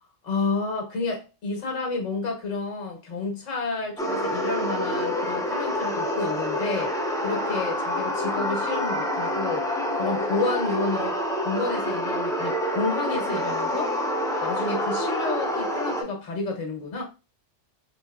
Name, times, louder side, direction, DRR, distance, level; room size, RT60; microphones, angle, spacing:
voice 1, 0.2-14.0 14.4-17.0, left 3 dB, 85° left, 1.5 m, -30 dB
sound 1, 4.0-16.0, equal, 5° left, 0.4 m, -27 dB
4.4 x 2.8 x 2.3 m
omnidirectional pair, 1.3 m